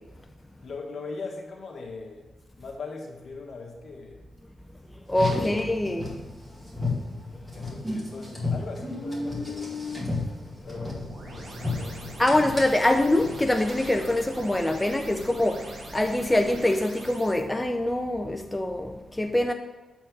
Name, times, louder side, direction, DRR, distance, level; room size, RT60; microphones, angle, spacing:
voice 1, 0.6-2.3 2.6-4.3 5.4-5.6 7.5-9.7 10.6-12.1, left 4 dB, 65° left, 1.5 m, -40 dB
voice 2, 5.1-6.1 12.2-19.5, left 1 dB, 10° left, 0.5 m, -24 dB
Car, 5.1-14.1, left 2 dB, 15° right, 2.0 m, -33 dB
sound 1, 10.6-17.4, right 2 dB, 80° right, 1.8 m, -43 dB
7.2 x 4.4 x 6.1 m
cardioid pair, 95°, 0 cm